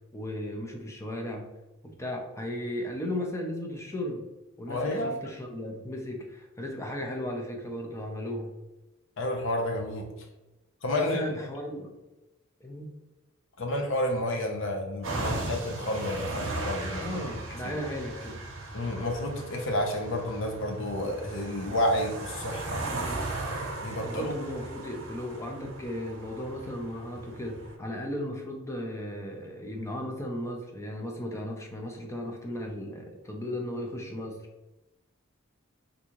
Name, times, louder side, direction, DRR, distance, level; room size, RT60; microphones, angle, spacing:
voice 1, 0.1-1.5 1.8-4.2 4.6-8.5 10.9-11.9 12.6-12.9 17.0-18.5 24.0-34.4, left 1 dB, 15° left, 1 dB, 0.5 m, -36 dB
voice 2, 4.7-5.2 9.2-10.1 10.8-11.2 13.6-17.2 17.6-17.7 18.7-22.8 23.8-24.3, left 1 dB, 65° left, 2 dB, 0.7 m, -30 dB
sound 1, 15.0-27.7, right 2 dB, 65° right, 0.8 m, -37 dB
3.6 x 2.6 x 2.9 m, 1.0 s
head